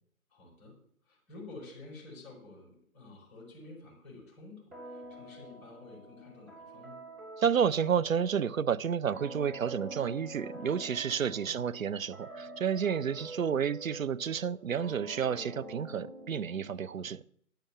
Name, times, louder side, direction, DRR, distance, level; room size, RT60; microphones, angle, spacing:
voice 1, 0.3-7.0 11.3-11.7 13.1-13.6 16.7-17.1, left 2 dB, 15° left, 4.8 m, -51 dB
sound 1, 4.7-17.1, right 2 dB, 20° right, 6.2 m, -46 dB
voice 2, 7.4-17.2, right 7 dB, 65° right, 0.6 m, -30 dB
10.5 x 6.7 x 7.1 m
figure-of-eight pair, 150°, 44 cm